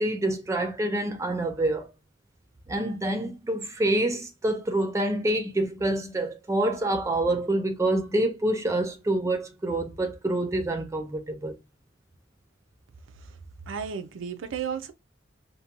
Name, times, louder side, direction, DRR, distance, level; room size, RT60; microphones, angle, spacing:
voice 1, 0.0-1.9 2.7-11.5, right 1 dB, 15° right, 0.3 m, -27 dB
voice 2, 13.7-14.9, right 7 dB, 85° right, 0.4 m, -33 dB
2.6 x 2.1 x 2.8 m
head